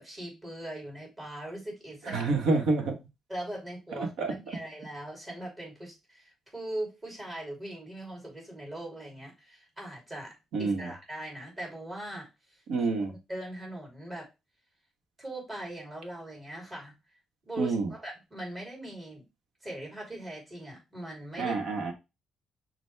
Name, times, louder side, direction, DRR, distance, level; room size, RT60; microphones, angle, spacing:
voice 1, 0.0-2.3 3.3-12.9 13.3-14.3 15.2-16.9 17.4-19.2 19.6-21.6, right 1 dB, 25° right, -1 dB, 2.8 m, -40 dB
voice 2, 2.1-3.0 4.0-4.3 10.5-10.9 12.7-13.1 17.6-17.9 21.4-21.9, right 3 dB, 80° right, 4 dB, 1.1 m, -28 dB
6.3 x 2.3 x 3.3 m, 0.25 s
cardioid pair, 90°, 0 cm